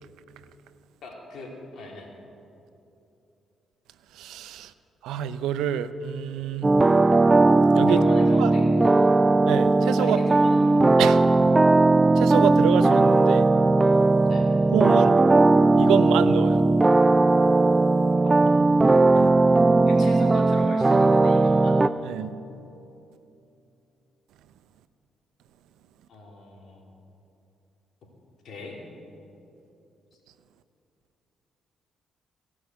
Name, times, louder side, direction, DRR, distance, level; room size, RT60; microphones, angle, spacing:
voice 1, 1.0-2.1 7.9-8.9 10.0-10.7 11.3-11.4 14.2-14.5 18.1-18.6 19.9-21.8 26.1-26.9 28.4-28.8, left 2 dB, 65° left, -1 dB, 2.8 m, -39 dB
voice 2, 4.1-4.7 5.0-6.7 7.8-8.0 8.4-8.5 9.5-10.2 11.0-11.2 12.2-13.5 14.7-15.1 15.8-16.6 19.1-19.3 22.0-22.3, right 10 dB, 85° right, 13 dB, 0.5 m, -27 dB
sound 1, 6.6-21.9, right 2 dB, 20° right, 0.3 m, -18 dB
16.0 x 6.2 x 7.9 m, 2.8 s
cardioid pair, 90°, 0 cm